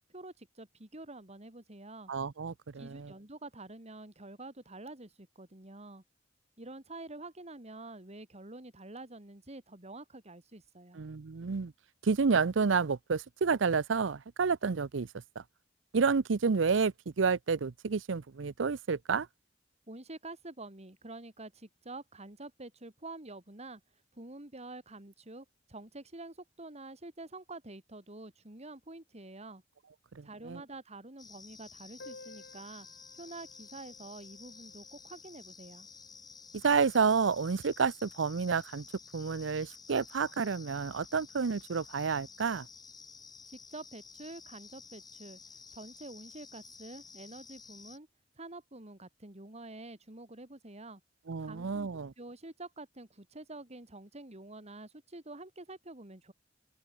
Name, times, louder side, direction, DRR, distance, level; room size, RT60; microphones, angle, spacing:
voice 1, 0.1-2.1 2.8-6.0 6.6-11.0 19.9-23.8 24.1-29.6 30.2-32.9 33.2-35.9 43.5-45.4 45.7-48.1 48.4-51.0 51.4-51.9 52.2-56.3, right 2 dB, 35° right, 3.0 m, -47 dB
voice 2, 2.1-3.1 11.0-11.7 12.0-15.1 15.4-15.5 15.9-19.3 30.1-30.6 36.6-38.8 39.1-42.7 51.3-52.1, right 5 dB, 85° right, 0.6 m, -30 dB
sound 1, 31.2-48.0, left 5 dB, 20° left, 4.8 m, -52 dB
Piano, 32.0-37.4 37.6-37.7 37.9-38.1 38.4-38.5 39.3-39.4, left 2 dB, 65° left, 4.4 m, -56 dB
open air
head